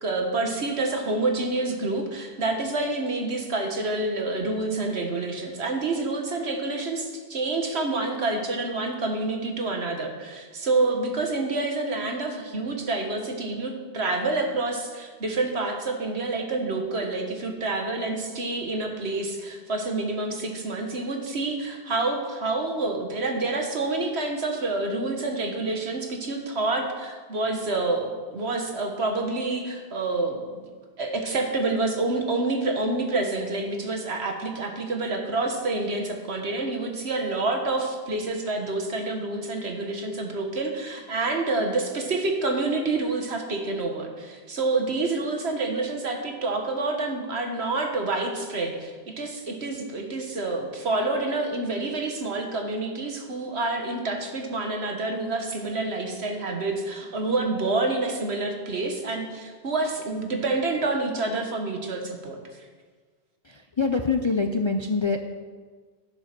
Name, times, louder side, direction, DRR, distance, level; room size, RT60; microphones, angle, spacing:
voice 1, 0.0-30.4 31.0-62.4, right 2 dB, 70° right, 3 dB, 1.7 m, -28 dB
voice 2, 63.4-65.2, left 4 dB, 35° left, 5 dB, 0.5 m, -25 dB
11.0 x 8.0 x 6.0 m, 1.5 s
omnidirectional pair, 1.1 m